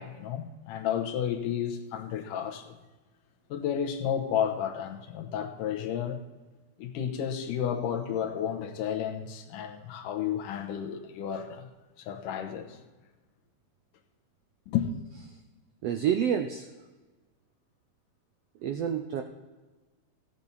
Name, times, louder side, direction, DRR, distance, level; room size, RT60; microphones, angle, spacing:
voice 1, 0.0-2.8 3.5-6.2 6.8-11.7 12.0-12.8 14.7-14.9, left 9 dB, 90° left, 2.5 m, -32 dB
voice 2, 15.8-16.7 18.6-19.2, right 8 dB, 80° right, 1.4 m, -28 dB
16.0 x 8.8 x 4.0 m
omnidirectional pair, 3.7 m